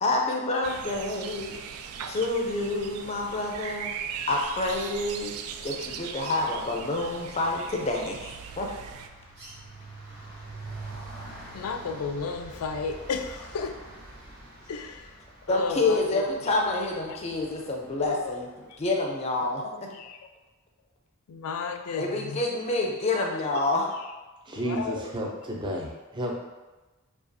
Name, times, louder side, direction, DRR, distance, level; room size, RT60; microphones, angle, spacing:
voice 1, 0.0-1.6 2.1-3.9 4.3-5.3 5.6-8.7 15.5-18.4 18.8-19.6 22.0-23.9, left 2 dB, 30° left, 0 dB, 0.5 m, -28 dB
sound 1, 0.6-9.1, right 7 dB, 85° right, 0.3 m, -39 dB
sound 2, 5.6-18.5, right 2 dB, 50° right, 1.1 m, -46 dB
voice 2, 11.5-13.8 14.7-15.2 15.5-16.3 17.1-17.2 18.0-18.4 18.7-18.8 19.7-20.2 21.3-22.4 24.6-25.2, left 5 dB, 85° left, 7 dB, 0.4 m, -33 dB
voice 3, 24.4-26.4, right 1 dB, 20° right, -1 dB, 0.5 m, -32 dB
5.0 x 2.4 x 2.6 m, 1.2 s
head